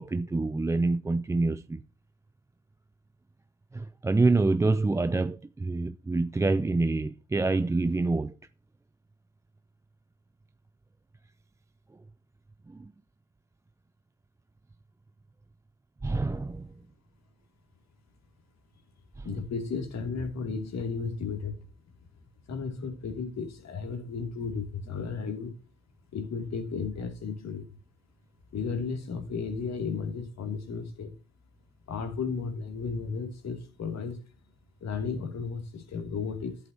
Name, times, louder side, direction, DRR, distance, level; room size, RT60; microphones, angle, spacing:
voice 1, 0.0-1.8 3.7-8.4 12.7-12.9 16.0-16.7 19.2-19.3, right 3 dB, 10° right, 0.3 m, -26 dB
voice 2, 19.2-21.6 22.5-25.6 26.1-27.7 28.5-31.1 31.9-34.2 34.8-36.6, left 5 dB, 60° left, 2.4 m, -34 dB
11.0 x 8.3 x 2.7 m
cardioid pair, 90°, 30 cm